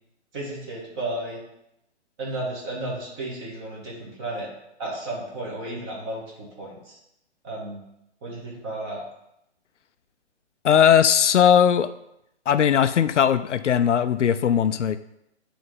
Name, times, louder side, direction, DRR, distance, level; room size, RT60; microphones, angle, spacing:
voice 1, 0.3-1.4 2.2-4.5 4.8-7.0 7.4-7.8 8.2-9.0, right 1 dB, 20° right, -4 dB, 1.8 m, -33 dB
voice 2, 10.6-11.9 12.5-15.0, left 8 dB, 80° left, 12 dB, 0.5 m, -19 dB
9.6 x 3.4 x 3.9 m, 0.82 s
hypercardioid pair, 155°, 35 cm